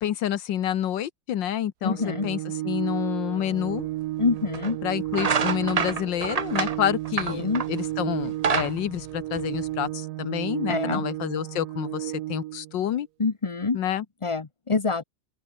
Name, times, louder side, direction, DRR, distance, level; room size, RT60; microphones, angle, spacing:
voice 1, 0.0-3.9 4.8-13.1 13.7-14.0, left 11 dB, 80° left, 1.7 m, -28 dB
voice 2, 1.8-2.3 4.2-4.8 7.3-7.6 10.7-11.0 13.2-13.8 14.2-15.0, left 4 dB, 30° left, 0.6 m, -26 dB
Organ, 1.8-12.8, right 16 dB, 70° right, 1.0 m, -33 dB
sound 1, 3.8-3.9 4.5-4.7 5.1-7.8 8.2-9.9, right 5 dB, 55° right, 0.4 m, -27 dB
open air
omnidirectional pair, 2.0 m